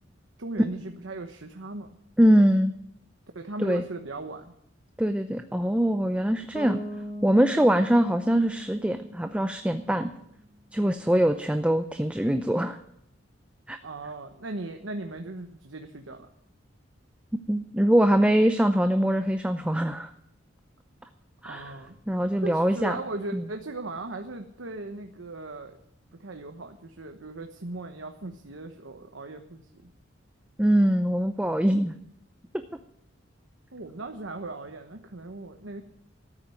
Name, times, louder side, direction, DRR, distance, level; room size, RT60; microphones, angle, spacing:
voice 1, 0.4-2.0 3.3-4.5 13.8-16.3 21.4-22.0 22.4-25.8 26.2-29.6 33.7-35.8, right 2 dB, 90° right, 5 dB, 1.1 m, -38 dB
voice 2, 2.2-2.7 3.6-3.8 5.0-6.8 7.2-10.1 10.7-12.8 13.7-13.8 17.5-20.1 21.4-21.7 22.1-23.0 23.3-23.4 30.6-31.9, equal, 5° right, 8 dB, 0.5 m, -23 dB
Bass guitar, 6.5-10.4, equal, 40° left, 2.1 m, -40 dB
13.5 x 8.9 x 9.5 m, 0.74 s
head